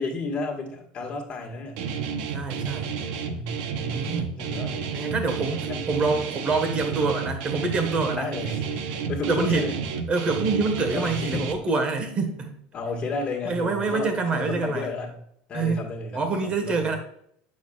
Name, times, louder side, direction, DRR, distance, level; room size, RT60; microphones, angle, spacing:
voice 1, 0.0-1.8 3.3-5.0 5.7-5.8 8.1-9.8 10.9-11.6 12.7-15.2 15.5-16.9, left 3 dB, 30° left, -1 dB, 1.7 m, -32 dB
Guitar, 1.8-11.5, right 6 dB, 75° right, 0.8 m, -31 dB
voice 2, 2.3-2.9 3.9-4.4 4.9-8.3 9.3-9.6 10.1-12.6 13.4-14.9 15.5-15.8 16.1-17.0, right 4 dB, 30° right, 5 dB, 1.4 m, -26 dB
8.2 x 6.5 x 2.4 m, 0.69 s
supercardioid pair, 140°, 4 cm